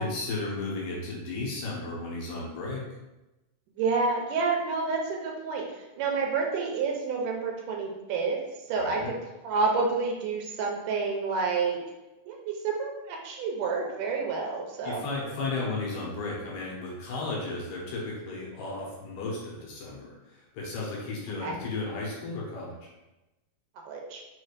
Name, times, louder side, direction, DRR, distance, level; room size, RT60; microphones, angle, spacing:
voice 1, 0.0-2.8 8.8-9.1 14.8-22.7, left 3 dB, 75° left, -4 dB, 2.5 m, -34 dB
voice 2, 3.8-5.6 6.0-8.4 8.7-9.0 9.4-11.8 12.3-15.0 21.4-21.5 23.9-24.2, right 4 dB, 85° right, 0 dB, 2.2 m, -29 dB
5.5 x 3.2 x 2.5 m, 1.0 s
omnidirectional pair, 3.7 m